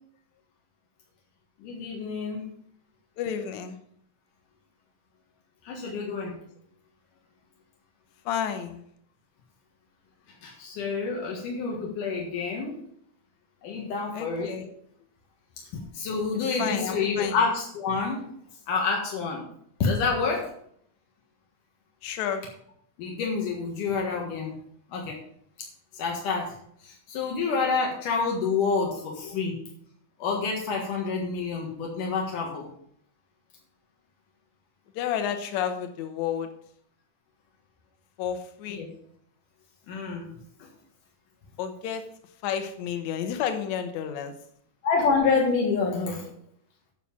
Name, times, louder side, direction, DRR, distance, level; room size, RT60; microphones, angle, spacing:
voice 1, 1.6-2.4 5.6-6.4 10.4-12.7 13.6-14.6 15.7-18.2 18.7-19.4 19.8-20.5 23.0-24.5 24.9-25.2 25.9-26.5 26.8-29.6 30.2-32.7 38.8-38.9 39.9-40.3 44.8-46.2, left 4 dB, 90° left, -1 dB, 3.2 m, -28 dB
voice 2, 3.2-3.8 8.3-8.8 11.7-11.8 14.1-14.7 16.6-17.4 22.0-22.4 28.9-29.4 35.0-36.5 38.2-38.9 41.6-42.0 42.4-44.3, left 8 dB, 65° left, 7 dB, 2.2 m, -31 dB
9.5 x 5.9 x 7.1 m, 0.67 s
omnidirectional pair, 3.6 m